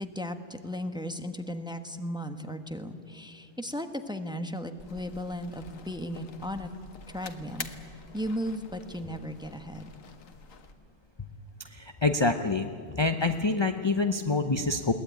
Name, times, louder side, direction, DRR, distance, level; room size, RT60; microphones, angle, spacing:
voice 1, 0.0-6.7 7.1-7.7 8.1-9.9, equal, 5° right, 7 dB, 1.0 m, -36 dB
sound 1, 4.8-10.7, left 5 dB, 75° left, 1.6 m, -46 dB
voice 2, 11.7-12.7 13.0-14.9, left 3 dB, 25° left, 7 dB, 0.6 m, -26 dB
21.5 x 18.5 x 9.2 m, 2.4 s
omnidirectional pair, 1.4 m